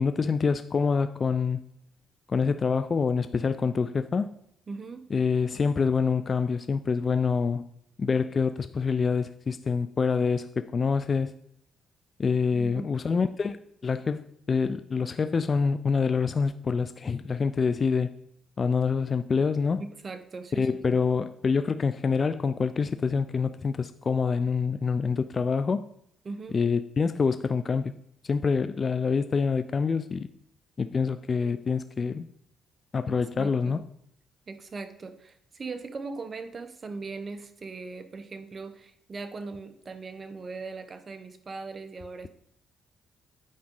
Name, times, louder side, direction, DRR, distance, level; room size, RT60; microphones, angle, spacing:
voice 1, 0.0-1.6 2.3-4.3 5.1-7.7 8.0-11.3 12.2-13.6 13.8-18.1 18.6-19.8 20.5-25.8 26.5-27.9 28.2-30.3 30.8-32.3 32.9-33.9, left 5 dB, 40° left, 0.3 m, -26 dB
voice 2, 4.7-5.1 12.5-12.9 19.8-21.0 26.2-26.6 33.1-33.8 34.5-42.3, right 4 dB, 35° right, 0.8 m, -39 dB
8.6 x 5.0 x 3.7 m
cardioid pair, 90°, 0 cm